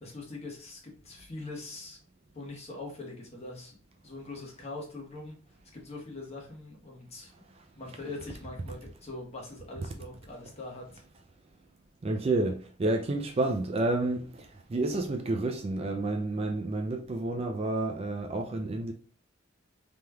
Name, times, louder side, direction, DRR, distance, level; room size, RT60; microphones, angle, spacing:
voice 1, 0.0-2.0 2.3-3.7 4.0-5.4 5.7-7.3 7.7-11.0, left 2 dB, 35° left, 1.1 m, -42 dB
voice 2, 12.0-18.9, right 2 dB, 30° right, 0.3 m, -30 dB
3.4 x 3.0 x 2.2 m
head